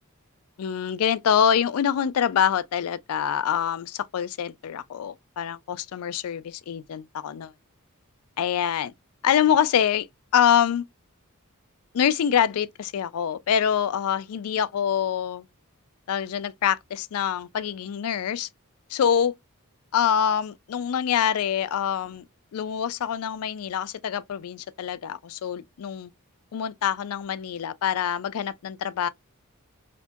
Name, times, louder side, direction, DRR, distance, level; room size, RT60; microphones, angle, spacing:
voice 1, 0.6-7.5 8.4-8.9 9.2-10.1 10.3-10.8 11.9-15.4 16.1-18.5 18.9-19.3 19.9-22.2 22.5-26.1 26.5-29.1, left 8 dB, 80° left, 0.4 m, -25 dB
2.8 x 2.6 x 2.3 m
head